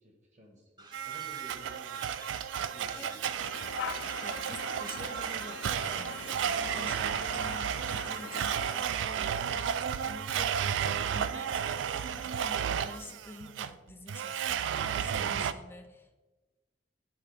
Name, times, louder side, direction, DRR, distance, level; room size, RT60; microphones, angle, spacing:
voice 1, 0.0-2.2 2.7-3.2, equal, 40° right, 2 dB, 1.4 m, -54 dB
sound 1, 0.8-5.9, right 3 dB, 25° right, 0.7 m, -51 dB
Domestic sounds home sounds, 0.9-15.5, right 8 dB, 90° right, 0.3 m, -33 dB
voice 2, 3.0-3.3 4.2-16.1, left 2 dB, 10° left, 5 dB, 0.6 m, -49 dB
sound 2, 3.4-8.8, left 7 dB, 90° left, 0.4 m, -43 dB
8.7 x 4.4 x 3.4 m, 1.2 s
head